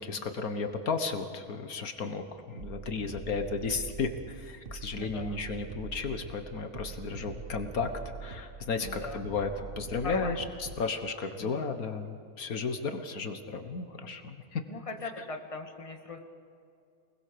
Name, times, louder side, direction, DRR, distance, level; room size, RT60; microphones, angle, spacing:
voice 1, 0.0-7.9 8.2-14.6, left 4 dB, 75° left, 7 dB, 1.8 m, -34 dB
sound 1, 2.6-10.9, right 5 dB, 45° right, 1.2 m, -43 dB
voice 2, 4.9-5.4 8.8-9.2 10.0-10.4 11.2-11.6 14.7-16.2, left 3 dB, 20° left, 4 dB, 1.9 m, -40 dB
27.5 x 21.0 x 6.9 m, 2.4 s
omnidirectional pair, 1.5 m